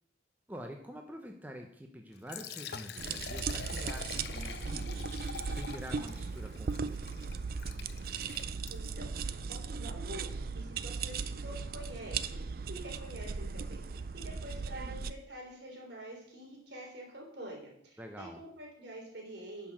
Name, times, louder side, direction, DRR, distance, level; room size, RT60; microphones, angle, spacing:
voice 1, 0.5-7.1 18.0-18.4, equal, 10° right, 3 dB, 0.7 m, -47 dB
Liquid, 2.1-9.0, left 6 dB, 60° left, 0.7 m, -45 dB
sound 1, 3.0-15.1, right 5 dB, 50° right, 0.4 m, -37 dB
voice 2, 8.7-9.1 9.5-19.7, right 1 dB, 70° right, -1 dB, 3.5 m, -47 dB
10.5 x 5.8 x 6.1 m, 0.68 s
head